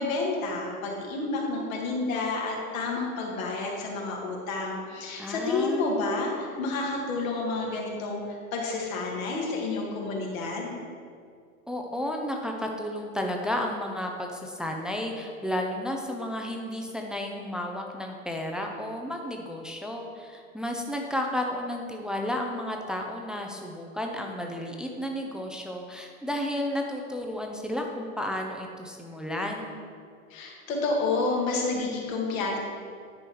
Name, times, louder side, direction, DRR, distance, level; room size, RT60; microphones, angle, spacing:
voice 1, 0.0-10.8 30.3-32.6, left 3 dB, 70° left, -1 dB, 2.0 m, -30 dB
voice 2, 5.2-6.1 11.7-29.8, left 1 dB, ahead, 1 dB, 0.4 m, -32 dB
9.8 x 4.6 x 4.6 m, 2.2 s
hypercardioid pair, 115°, 42 cm